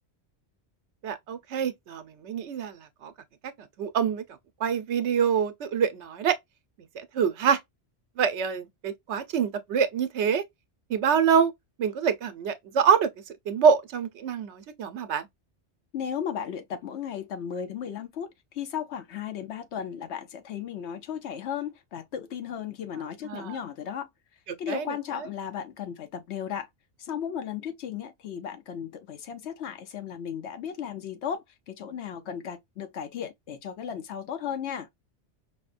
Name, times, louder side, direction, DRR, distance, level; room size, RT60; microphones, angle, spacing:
voice 1, 1.0-3.1 3.8-4.2 4.6-6.3 7.0-7.6 8.2-10.4 10.9-11.5 11.8-13.1 13.5-15.3 23.3-23.5 24.7-24.8, right 7 dB, 80° right, 1.0 m, -25 dB
voice 2, 15.9-24.1 24.6-26.7 27.0-34.9, left 8 dB, 75° left, 1.0 m, -35 dB
5.2 x 2.2 x 2.4 m
omnidirectional pair, 1.2 m